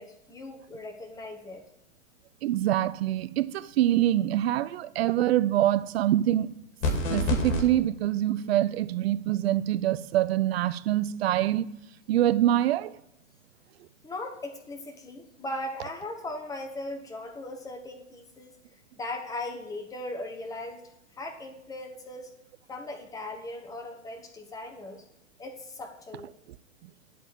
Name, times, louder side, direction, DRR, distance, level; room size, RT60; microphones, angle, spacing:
voice 1, 0.0-1.6 14.0-18.6 18.9-20.8 21.2-22.3 22.7-25.0 25.4-26.3, left 2 dB, 10° left, 1.0 m, -38 dB
voice 2, 2.4-6.5 7.1-11.7 12.1-13.0 26.8-26.9, right 13 dB, 55° right, 0.5 m, -25 dB
sound 1, 6.8-7.6, left 2 dB, 55° left, 2.6 m, -26 dB
11.0 x 4.1 x 7.6 m
hypercardioid pair, 110°, 39 cm